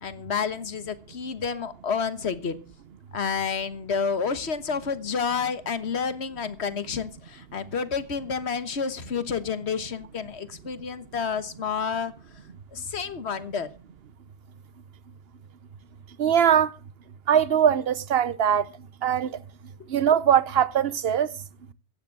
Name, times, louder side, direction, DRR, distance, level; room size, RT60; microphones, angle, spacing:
voice 1, 0.0-2.6 3.1-12.1 12.7-13.7, left 6 dB, 70° left, 1.5 m, -29 dB
voice 2, 16.2-16.7 17.3-18.6 19.0-19.3 19.9-21.3, right 9 dB, 65° right, 1.1 m, -21 dB
14.5 x 9.7 x 6.0 m
omnidirectional pair, 1.1 m